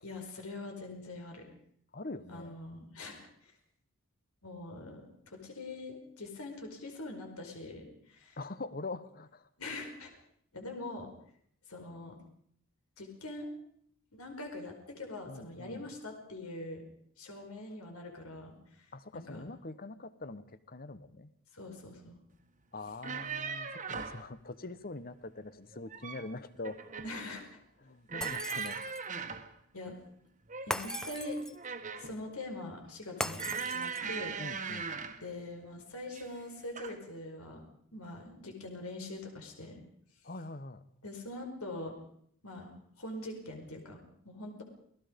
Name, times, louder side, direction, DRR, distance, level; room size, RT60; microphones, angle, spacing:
voice 1, 0.0-1.5 2.3-3.5 4.4-8.4 9.6-10.1 10.5-11.1 11.7-12.2 13.0-13.5 14.1-16.8 17.2-18.9 19.1-19.4 21.5-22.2 27.0-27.4 29.7-30.0 30.7-31.4 32.0-34.8 35.2-37.6 37.9-39.8 41.0-41.9 42.4-44.6, left 2 dB, 80° left, 3 dB, 4.9 m, -43 dB
voice 2, 1.9-2.6 8.4-9.5 15.3-15.9 18.9-21.3 22.7-26.8 27.8-28.8 34.4-35.0 40.2-40.8, left 2 dB, 40° left, 14 dB, 1.1 m, -43 dB
sound 1, 22.9-24.2 25.7-26.3 26.6-27.2 28.1-29.5 30.5-32.2 33.4-35.2 36.1-36.4 36.8-37.0, right 6 dB, 35° right, 1.6 m, -39 dB
Shatter, 28.2-29.1 30.7-31.7 33.2-34.2, left 1 dB, 5° left, 0.8 m, -39 dB
28.5 x 18.5 x 5.3 m, 0.66 s
head